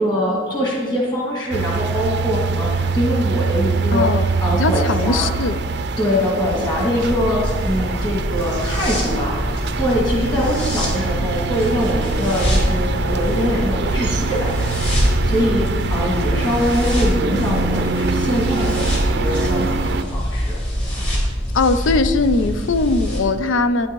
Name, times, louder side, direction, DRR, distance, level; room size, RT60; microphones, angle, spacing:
voice 1, 0.0-4.1 4.4-5.3 6.0-21.0, equal, 25° left, -4 dB, 2.1 m, -23 dB
sound 1, 1.5-20.0, right 4 dB, 60° right, 0.5 m, -24 dB
voice 2, 3.9-4.3 4.5-5.6 21.5-23.9, left 3 dB, 90° left, 11 dB, 0.5 m, -19 dB
sound 2, 7.0-23.2, equal, 40° left, 3.2 m, -24 dB
11.5 x 9.5 x 3.0 m, 1.5 s
head